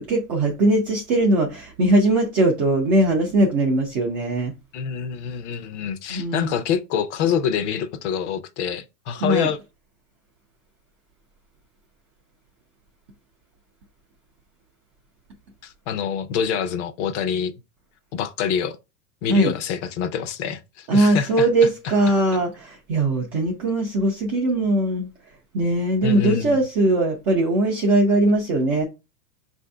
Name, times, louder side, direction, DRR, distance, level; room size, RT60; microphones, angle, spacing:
voice 1, 0.0-4.5 6.1-6.5 9.2-9.5 19.3-19.5 20.9-25.1 25.5-28.8, right 1 dB, 20° right, 0.3 m, -20 dB
voice 2, 4.7-9.6 15.6-17.5 18.1-18.8 19.2-21.5 26.0-26.6, left 8 dB, 50° left, 0.7 m, -26 dB
5.2 x 2.6 x 3.3 m
supercardioid pair, 140°, 45 cm